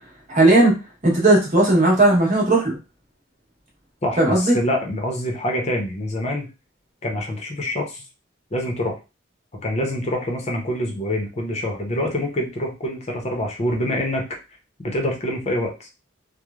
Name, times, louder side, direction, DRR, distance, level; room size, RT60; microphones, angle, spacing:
voice 1, 0.3-0.7 1.0-2.8 4.2-4.6, right 2 dB, 35° right, -2 dB, 1.0 m, -16 dB
voice 2, 4.0-6.5 7.0-8.0 8.5-9.0 9.5-14.3 14.8-15.9, left 1 dB, 30° left, 2 dB, 0.6 m, -25 dB
3.1 x 2.0 x 2.4 m, 0.28 s
head